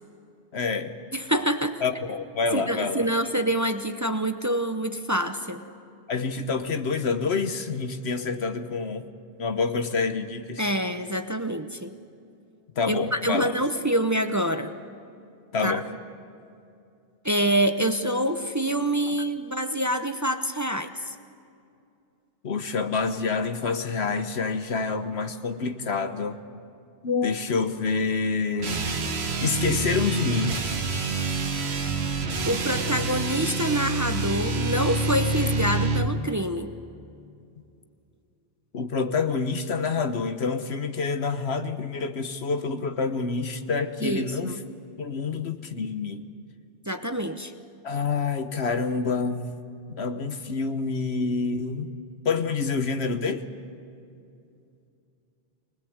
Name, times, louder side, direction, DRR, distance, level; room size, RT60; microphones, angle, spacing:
voice 1, 0.5-0.9 1.8-3.1 6.1-9.1 9.4-10.7 12.8-13.5 15.5-15.8 22.4-26.4 27.0-28.8 29.4-30.6 38.7-44.6 45.0-46.2 47.8-49.6 49.9-51.9 52.2-53.4, left 4 dB, 75° left, 9 dB, 1.4 m, -27 dB
voice 2, 1.1-1.8 2.5-5.6 10.6-11.9 12.9-14.7 15.6-15.8 17.2-21.1 32.5-36.7 44.0-44.6 46.8-47.5, right 1 dB, 20° right, 8 dB, 0.8 m, -26 dB
sound 1, 28.6-36.1, right 3 dB, 80° right, 1.5 m, -27 dB
24.5 x 20.0 x 8.0 m, 2.5 s
omnidirectional pair, 1.1 m